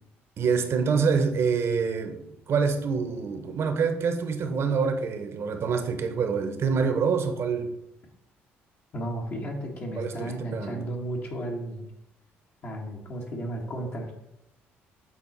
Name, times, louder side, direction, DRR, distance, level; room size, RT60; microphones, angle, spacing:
voice 1, 0.4-7.7 10.0-10.8, right 5 dB, 60° right, 1.1 m, -26 dB
voice 2, 8.9-11.8 12.6-14.1, right 1 dB, 55° left, 1.6 m, -33 dB
7.7 x 4.2 x 4.2 m
supercardioid pair, 70°, 5 cm